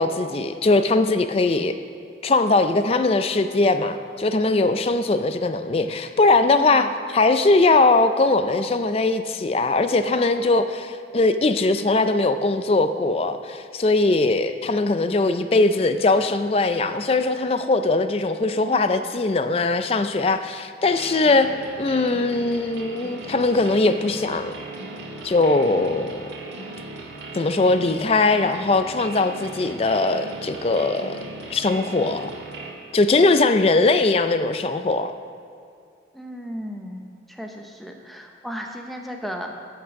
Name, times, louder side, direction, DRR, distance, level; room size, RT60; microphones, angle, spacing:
voice 1, 0.0-1.8 2.2-21.5 21.8-24.6 25.2-26.2 27.3-31.2 31.5-32.3 32.9-35.1, left 3 dB, 30° left, 10 dB, 0.4 m, -20 dB
voice 2, 6.5-6.9 36.1-39.5, equal, ahead, 2 dB, 0.7 m, -35 dB
sound 1, 20.9-32.7, right 2 dB, 80° right, 1.5 m, -37 dB
11.0 x 6.0 x 6.3 m, 2.3 s
head